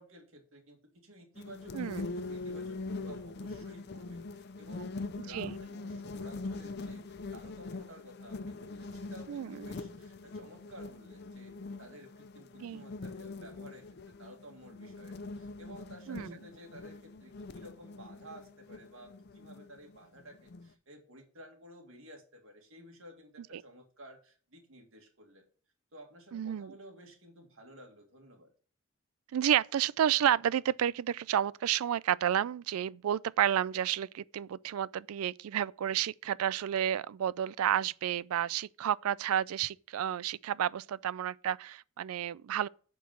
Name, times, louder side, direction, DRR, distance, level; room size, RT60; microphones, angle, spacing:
voice 1, 0.0-11.5 11.8-13.9 14.2-25.5 25.9-28.5, right 1 dB, 70° right, 2.2 m, -53 dB
sound 1, 1.4-20.7, left 3 dB, 50° left, 0.5 m, -43 dB
voice 2, 1.7-2.1 5.3-5.5 9.3-9.7 12.6-12.8 16.1-16.3 23.5-23.6 26.3-26.7 29.3-42.7, right 10 dB, 85° right, 0.3 m, -31 dB
8.3 x 4.6 x 7.2 m
head